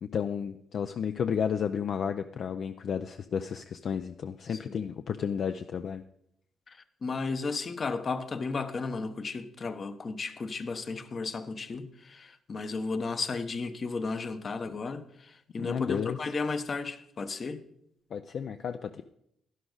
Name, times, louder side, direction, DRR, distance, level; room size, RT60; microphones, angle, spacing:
voice 1, 0.0-6.0 15.6-16.2 18.1-19.0, left 7 dB, 60° left, 0.4 m, -32 dB
voice 2, 6.7-17.6, left 4 dB, 40° left, 0.9 m, -34 dB
11.0 x 11.0 x 4.0 m
cardioid pair, 90°, 0 cm